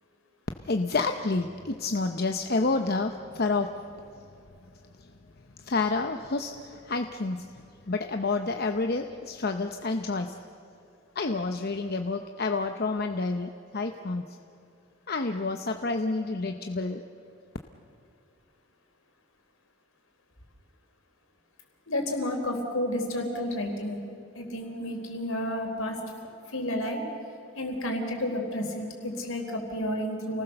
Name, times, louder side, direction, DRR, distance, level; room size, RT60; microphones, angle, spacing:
voice 1, 0.6-3.7 5.6-7.5 7.9-10.4 11.1-14.2 15.1-17.0, left 3 dB, 45° left, 6 dB, 0.8 m, -29 dB
voice 2, 21.9-24.0 24.3-26.0 26.5-27.0 27.5-30.4, left 1 dB, 70° left, 3 dB, 4.0 m, -31 dB
29.5 x 19.0 x 6.7 m, 2.6 s
head